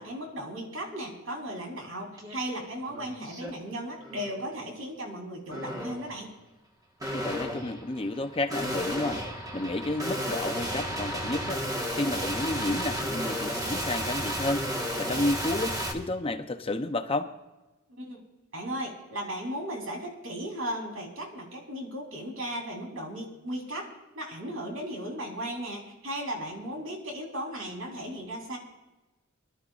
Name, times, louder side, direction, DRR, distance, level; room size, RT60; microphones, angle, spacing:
voice 1, 0.0-6.3 18.0-18.2 18.5-23.9 24.2-28.6, equal, 80° right, 0 dB, 3.9 m, -36 dB
sound 1, 2.2-2.4 2.8-3.5 4.0-4.4 5.5-6.1 7.0-15.9, equal, 20° right, 1.5 m, -33 dB
voice 2, 7.1-9.2 9.5-11.6 12.0-14.6 15.0-17.3, left 2 dB, 30° left, 8 dB, 0.7 m, -31 dB
24.5 x 12.5 x 2.5 m, 1.1 s
head